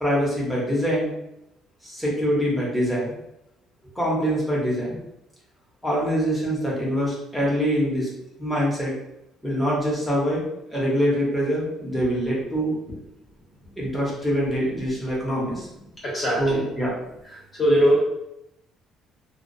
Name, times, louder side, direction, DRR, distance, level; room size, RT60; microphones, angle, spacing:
voice 1, 0.0-1.1 1.8-3.2 4.0-5.0 5.8-8.1 8.4-8.9 9.4-10.4 10.7-12.7 13.8-15.7 16.4-16.9, equal, ahead, -6 dB, 0.8 m, -24 dB
voice 2, 16.0-16.6 17.2-18.0, equal, 30° left, -5 dB, 0.6 m, -21 dB
2.3 x 2.1 x 2.5 m, 0.86 s
cardioid pair, 130°, 0 cm